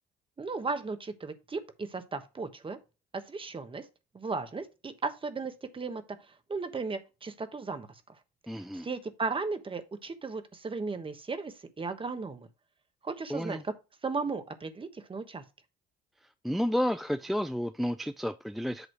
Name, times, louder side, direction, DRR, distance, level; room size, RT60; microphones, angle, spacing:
voice 1, 0.4-2.8 3.1-3.8 4.1-6.0 6.5-7.9 8.8-12.5 13.0-13.6 14.0-15.4, right 4 dB, 25° right, 1.2 m, -35 dB
voice 2, 8.5-8.9 13.3-13.6 16.2-18.9, equal, ahead, 0.4 m, -31 dB
8.1 x 3.1 x 6.0 m
supercardioid pair, 70°, 20 cm